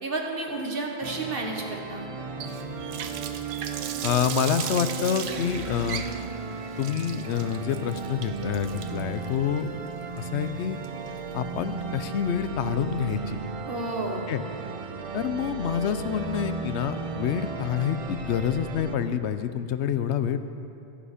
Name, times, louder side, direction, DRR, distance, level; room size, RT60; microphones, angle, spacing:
voice 1, 0.0-2.1 13.7-14.3, right 2 dB, 60° right, 0 dB, 1.6 m, -31 dB
sound 1, 1.0-19.0, right 5 dB, 40° right, 0.5 m, -35 dB
Water tap faucet, 2.4-11.3, right 8 dB, 75° right, 0.9 m, -37 dB
voice 2, 4.0-6.0 6.8-9.7 10.2-10.8 11.3-13.4 14.3-14.4 15.1-20.4, left 8 dB, 90° left, 11 dB, 0.9 m, -27 dB
13.5 x 10.0 x 5.0 m, 2.7 s
omnidirectional pair, 1.1 m